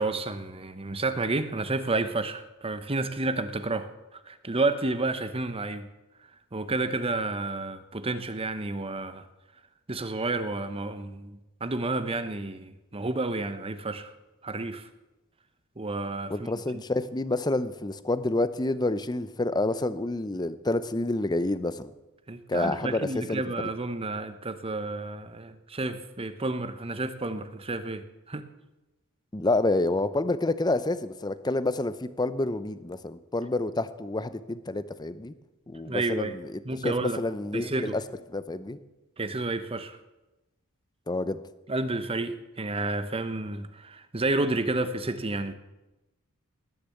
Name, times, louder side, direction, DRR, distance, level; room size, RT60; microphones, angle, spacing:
voice 1, 0.0-5.9 6.5-9.2 9.9-14.1 14.4-14.9 15.8-16.8 22.3-28.4 35.9-36.4 36.6-37.2 37.5-38.0 39.2-40.0 41.7-45.5, right 2 dB, 25° right, 10 dB, 0.9 m, -30 dB
voice 2, 16.3-21.9 22.5-23.4 29.3-35.3 35.7-38.0 38.3-38.8 41.1-41.4, left 2 dB, 20° left, 14 dB, 0.6 m, -28 dB
19.5 x 6.8 x 8.4 m, 1.0 s
head